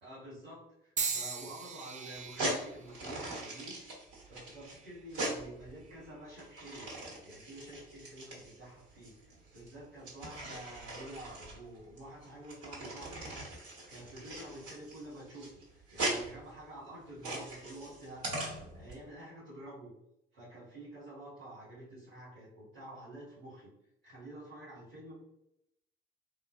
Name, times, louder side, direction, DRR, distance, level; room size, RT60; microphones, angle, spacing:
voice 1, 0.0-3.7 4.3-6.9 7.2-13.3 13.9-18.4 18.7-19.9 20.3-23.7 24.0-25.1, right 1 dB, 85° right, -8 dB, 1.2 m, -49 dB
sound 1, 1.0-5.1 5.8-6.2 7.2-7.4, right 5 dB, 25° right, 0.4 m, -41 dB
sound 2, 2.2-18.9, right 1 dB, 55° right, 1.2 m, -41 dB
3.5 x 2.4 x 2.4 m, 0.82 s
figure-of-eight pair, 45°, 29 cm